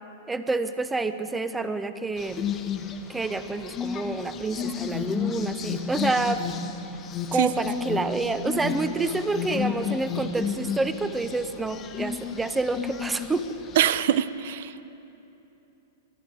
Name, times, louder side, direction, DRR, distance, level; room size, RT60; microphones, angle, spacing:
voice 1, 0.3-2.4 3.1-6.4 7.3-13.4, right 3 dB, 10° right, 11 dB, 0.7 m, -28 dB
sound 1, 2.2-14.0, left 7 dB, 30° left, 1.0 m, -33 dB
Alarm, 4.8-10.5, left 6 dB, 45° left, 1.5 m, -35 dB
voice 2, 13.8-14.8, right 11 dB, 65° right, 16 dB, 0.6 m, -23 dB
24.5 x 11.0 x 4.6 m, 3.0 s
hypercardioid pair, 115°, 0 cm